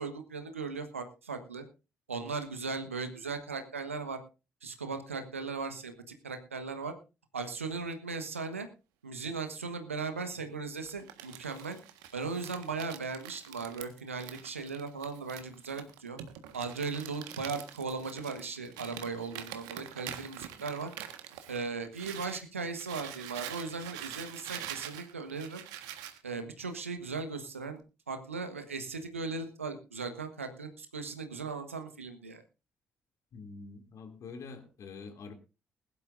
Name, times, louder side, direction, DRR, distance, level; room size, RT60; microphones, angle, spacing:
voice 1, 0.0-1.6 2.1-4.2 4.6-6.9 7.3-8.7 9.0-11.8 12.1-16.2 16.5-20.9 21.5-25.6 26.2-27.8 28.1-32.4, right 4 dB, 85° right, 1.4 m, -38 dB
Crumpling crinkling, 10.8-22.4 22.7-26.2, right 11 dB, 65° right, 1.5 m, -45 dB
voice 2, 33.3-35.3, left 4 dB, 50° left, 2.7 m, -46 dB
21.0 x 11.5 x 2.6 m
figure-of-eight pair, 45°, 7 cm